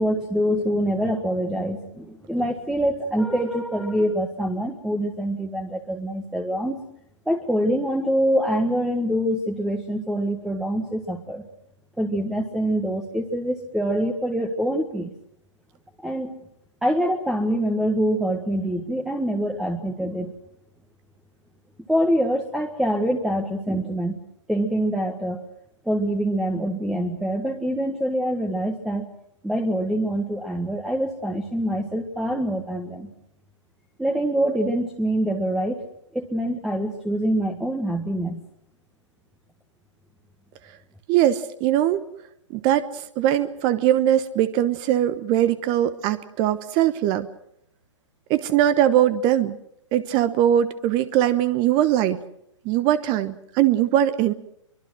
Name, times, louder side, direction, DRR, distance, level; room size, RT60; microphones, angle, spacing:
voice 1, 0.0-6.8 7.3-11.5 12.0-15.1 16.0-16.4 16.8-20.3 21.9-24.2 24.5-25.4 25.9-29.1 29.4-33.1 34.0-35.9 36.1-38.4, equal, ahead, 4 dB, 1.6 m, -25 dB
voice 2, 41.1-42.0 42.5-47.3 48.3-49.6 49.9-52.2 52.6-54.3, right 11 dB, 30° right, 13 dB, 1.0 m, -21 dB
24.0 x 23.0 x 6.3 m, 0.75 s
figure-of-eight pair, 125°, 16 cm